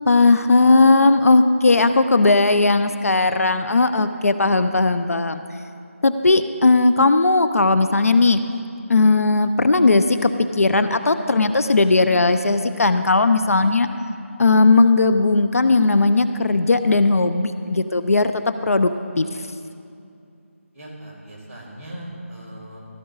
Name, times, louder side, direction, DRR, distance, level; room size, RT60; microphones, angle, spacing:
voice 1, 0.0-5.4 6.0-8.4 8.9-13.9 14.4-18.9 19.2-19.3, left 3 dB, 80° left, 10 dB, 0.7 m, -17 dB
voice 2, 20.7-22.8, right 1 dB, 20° right, -11 dB, 4.1 m, -38 dB
15.5 x 13.5 x 4.0 m, 2.5 s
figure-of-eight pair, 180°, 8 cm